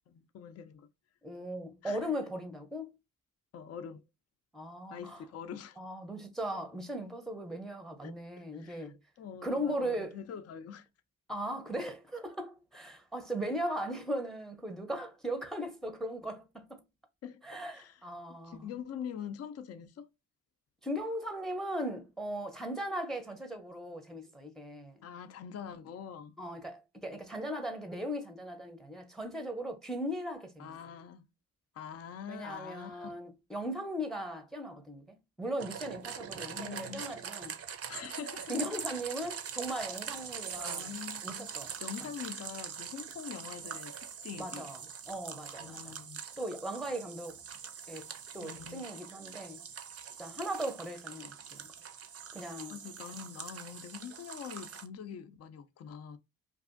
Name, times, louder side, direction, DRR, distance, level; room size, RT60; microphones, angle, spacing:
voice 1, 0.1-0.9 1.8-2.1 3.5-4.0 4.9-5.8 8.0-8.2 8.5-10.9 17.2-18.0 18.4-20.1 25.0-26.4 30.6-31.2 31.7-33.1 36.3-37.0 37.9-38.7 40.6-41.5 41.8-44.7 45.6-46.2 48.4-48.8 52.7-56.2, left 8 dB, 45° left, 0.5 m, -44 dB
voice 2, 1.2-2.9 4.5-5.2 5.8-9.0 9.4-10.1 11.3-16.8 17.4-18.7 20.8-25.0 26.4-30.7 32.3-35.0 35.4-37.5 38.5-40.9 41.2-41.7 44.4-44.8 45.1-46.0 46.4-47.4 47.9-49.6 50.2-51.7 52.3-52.8, equal, ahead, 0.6 m, -38 dB
sound 1, 35.6-54.9, right 7 dB, 45° right, 0.5 m, -43 dB
2.6 x 2.4 x 2.4 m
cardioid pair, 75°, 34 cm